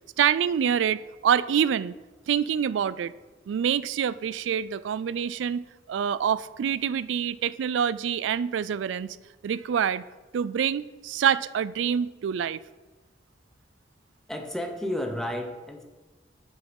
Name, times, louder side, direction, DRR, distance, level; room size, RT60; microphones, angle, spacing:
voice 1, 0.2-2.0 2.3-3.1 3.5-9.2 9.4-10.1 10.3-12.6, right 8 dB, 75° right, 17 dB, 0.3 m, -26 dB
voice 2, 14.3-15.8, left 1 dB, 5° left, 3 dB, 0.9 m, -32 dB
6.8 x 6.2 x 5.3 m, 1.2 s
head